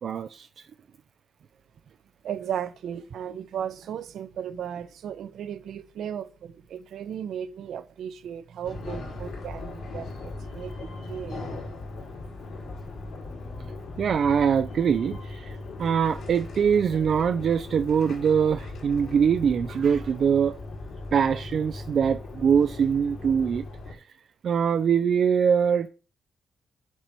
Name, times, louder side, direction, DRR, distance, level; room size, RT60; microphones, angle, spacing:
voice 1, 0.0-0.5 14.0-20.6 21.1-23.6 24.4-25.9, right 7 dB, 50° right, 0.4 m, -23 dB
voice 2, 2.2-11.4, right 9 dB, 70° right, 0.9 m, -36 dB
sound 1, 8.6-23.9, left 2 dB, 65° left, 3.6 m, -38 dB
7.4 x 4.5 x 6.7 m
wide cardioid pair, 170°, 0 cm